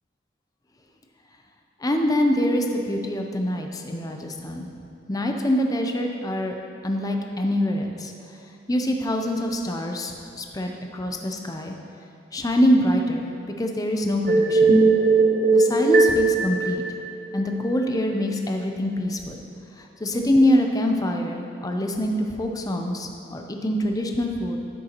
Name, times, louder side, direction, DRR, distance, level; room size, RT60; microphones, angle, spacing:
voice 1, 1.8-4.7 5.1-6.6 6.8-8.1 8.7-11.7 12.3-13.3 13.6-14.8 15.5-16.8 17.3-19.4 19.8-24.6, left 1 dB, 20° left, 3 dB, 0.6 m, -24 dB
sound 1, 14.3-17.6, right 3 dB, 50° right, 0.8 m, -19 dB
12.5 x 6.4 x 3.0 m, 2.5 s
head